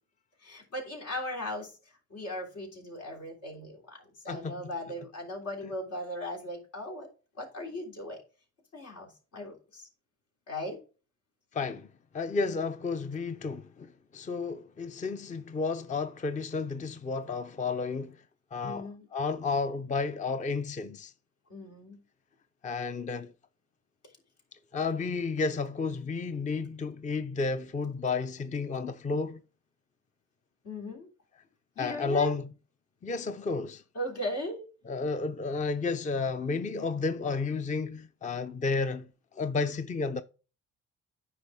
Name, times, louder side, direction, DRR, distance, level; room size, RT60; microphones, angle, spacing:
voice 1, 0.4-1.7 2.1-7.1 7.4-8.2 8.7-9.9 10.5-10.8 18.6-19.1 21.5-22.0 30.6-31.1 31.8-32.3 33.9-34.7, left 1 dB, 75° left, 3.5 m, -38 dB
voice 2, 4.3-5.1 5.6-5.7 11.5-11.9 12.1-18.2 18.5-21.1 22.6-23.3 24.7-29.4 31.8-32.5 33.0-33.8 34.9-39.1 39.3-40.2, left 4 dB, 25° left, 0.5 m, -32 dB
9.6 x 5.4 x 3.5 m
cardioid pair, 90°, 30 cm